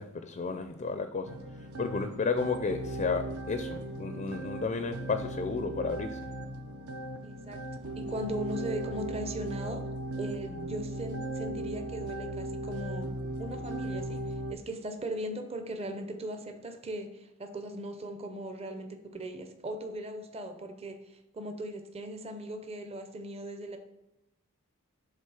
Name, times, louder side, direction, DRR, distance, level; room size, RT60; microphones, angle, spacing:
voice 1, 0.0-1.4 1.8-6.2, left 4 dB, 35° left, 8 dB, 0.4 m, -32 dB
sound 1, 1.2-14.5, right 1 dB, 70° right, 0.7 m, -37 dB
voice 2, 7.2-7.6 8.0-9.8 10.2-13.1 13.4-23.8, right 1 dB, 30° right, 6 dB, 0.6 m, -38 dB
7.4 x 3.8 x 4.8 m, 0.97 s
head